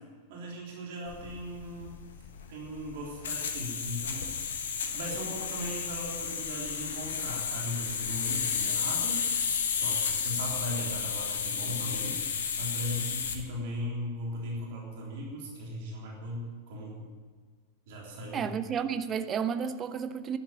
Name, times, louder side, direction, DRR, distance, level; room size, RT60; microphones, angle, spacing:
voice 1, 0.3-2.0 2.5-4.3 4.8-9.2 9.8-17.1 17.9-18.5, equal, 50° right, -2 dB, 3.5 m, -38 dB
sound 1, 1.1-13.4, left 6 dB, 65° left, 1.5 m, -32 dB
voice 2, 18.3-20.4, right 7 dB, 25° right, 10 dB, 1.0 m, -31 dB
11.5 x 11.0 x 8.9 m, 1.6 s
figure-of-eight pair, 90°, 0 cm